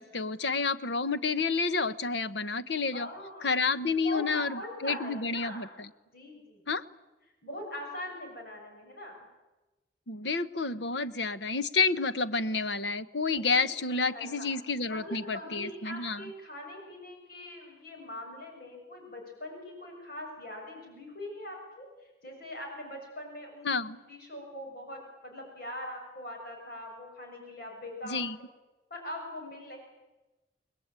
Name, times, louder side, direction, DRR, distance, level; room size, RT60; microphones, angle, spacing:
voice 1, 0.0-3.1 3.4-5.7 6.7-6.8 10.1-16.3 23.6-24.0 28.0-28.4, left 4 dB, 75° left, 13 dB, 1.1 m, -30 dB
voice 2, 2.9-5.7 6.1-6.6 7.4-9.2 13.4-14.5 14.9-28.2 28.9-29.8, left 1 dB, 60° left, 1 dB, 6.8 m, -42 dB
29.5 x 21.0 x 9.0 m, 1.1 s
head